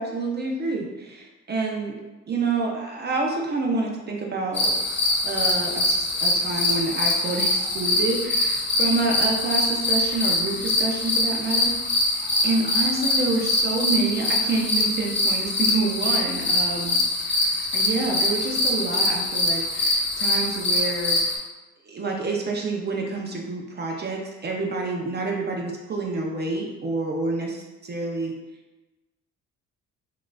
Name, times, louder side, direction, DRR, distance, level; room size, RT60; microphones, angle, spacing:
voice 1, 0.0-2.0 2.3-4.7 5.2-11.7 12.1-17.0 17.7-21.4 21.9-28.3, right 3 dB, 35° right, 0 dB, 0.5 m, -28 dB
sound 1, 4.5-21.4, left 2 dB, 35° left, 0.7 m, -23 dB
3.6 x 2.5 x 2.2 m, 1.1 s
cardioid pair, 90°, 30 cm